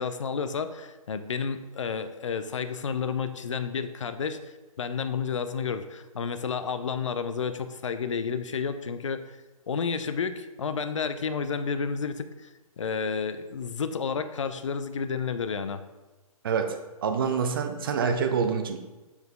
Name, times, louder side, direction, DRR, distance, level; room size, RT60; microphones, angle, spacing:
voice 1, 0.0-9.4 9.7-12.5 12.8-15.8, left 6 dB, 55° left, 10 dB, 0.5 m, -31 dB
voice 2, 16.4-18.8, right 6 dB, 40° right, 6 dB, 0.5 m, -27 dB
7.0 x 4.4 x 3.2 m, 1.2 s
figure-of-eight pair, 130°, 19 cm